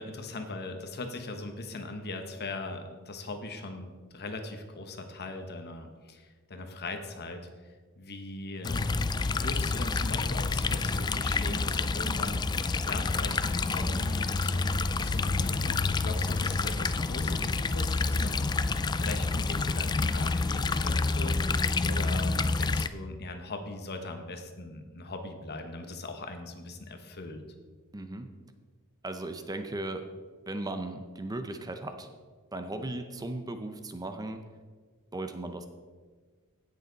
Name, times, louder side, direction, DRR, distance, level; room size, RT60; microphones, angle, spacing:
voice 1, 0.0-27.4, left 2 dB, 50° left, 6 dB, 1.2 m, -40 dB
sound 1, 8.6-22.9, left 3 dB, 20° left, 0.3 m, -28 dB
voice 2, 27.9-28.3 29.0-30.0 30.5-32.1 32.5-34.4 35.1-35.7, right 2 dB, 15° right, 7 dB, 0.6 m, -36 dB
16.5 x 6.7 x 4.0 m, 1.4 s
head